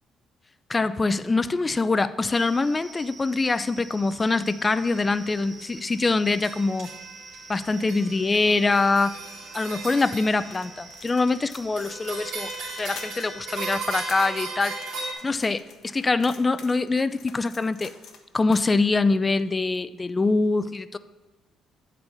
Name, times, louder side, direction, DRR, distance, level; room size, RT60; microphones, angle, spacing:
voice 1, 0.7-6.9 7.5-9.2 9.5-14.8 15.2-17.9 18.3-21.0, left 3 dB, 25° left, 14 dB, 0.4 m, -24 dB
sound 1, 2.3-13.8, right 3 dB, 25° right, 1.3 m, -47 dB
sound 2, 4.9-5.3 5.8-5.9 6.3-11.4 11.8-15.1, right 3 dB, 75° right, 2.1 m, -37 dB
sound 3, 10.3-13.3 13.6-14.3 14.7-18.2 18.5-18.7, left 6 dB, 70° left, 0.9 m, -47 dB
7.8 x 4.1 x 6.8 m, 1.2 s
cardioid pair, 85°, 0 cm